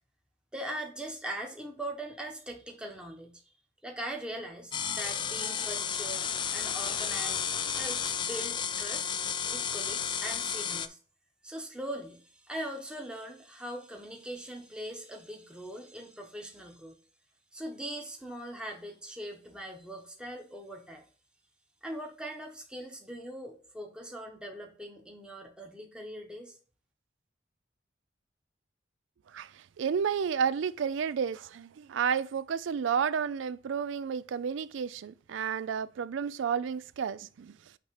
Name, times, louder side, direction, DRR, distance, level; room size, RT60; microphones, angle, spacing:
voice 1, 0.5-3.5 3.8-6.3 6.5-9.1 9.5-11.0 11.4-17.0 17.5-21.0 21.8-26.5, right 1 dB, 5° right, 1.0 m, -41 dB
sound 1, 4.7-10.9, left 7 dB, 25° left, 0.3 m, -32 dB
voice 2, 29.8-37.5, right 7 dB, 70° right, 0.4 m, -31 dB
8.6 x 3.0 x 4.6 m
head